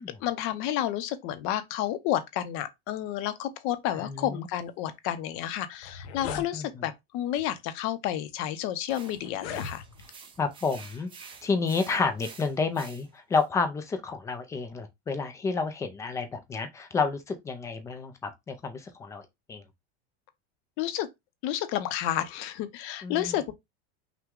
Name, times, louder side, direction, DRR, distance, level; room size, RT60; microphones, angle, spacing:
voice 1, 0.2-9.8 20.8-21.1 21.4-23.5, left 12 dB, 40° left, 0.7 m, -31 dB
voice 2, 4.0-4.5 6.3-6.9 10.4-11.1 11.4-19.2 19.5-19.6 23.0-23.4, left 4 dB, 10° left, 0.3 m, -30 dB
sound 1, 5.4-5.5 5.7-6.5 7.4-7.6 8.3-8.4 9.2-10.2, left 7 dB, 85° left, 0.9 m, -38 dB
sound 2, 8.9-13.4, right 5 dB, 15° right, 0.7 m, -49 dB
5.8 x 2.2 x 3.6 m
supercardioid pair, 160°, 32 cm